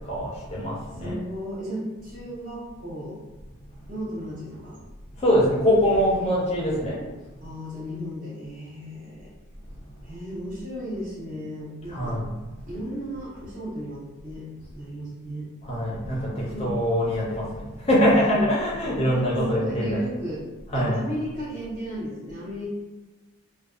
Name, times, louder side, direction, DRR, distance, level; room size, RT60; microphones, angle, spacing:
voice 1, 0.1-1.1 5.2-6.9 11.9-12.3 15.7-17.4 17.9-20.0 20.7-21.0, equal, 30° left, -6 dB, 0.5 m, -23 dB
voice 2, 0.9-3.5 3.9-4.8 6.6-7.1 7.4-9.3 10.0-12.2 12.7-15.5 15.8-16.1 16.5-16.8 18.0-18.4 19.0-20.4 20.7-22.7, equal, 40° right, -7 dB, 0.8 m, -35 dB
2.5 x 2.2 x 2.4 m, 1.2 s
head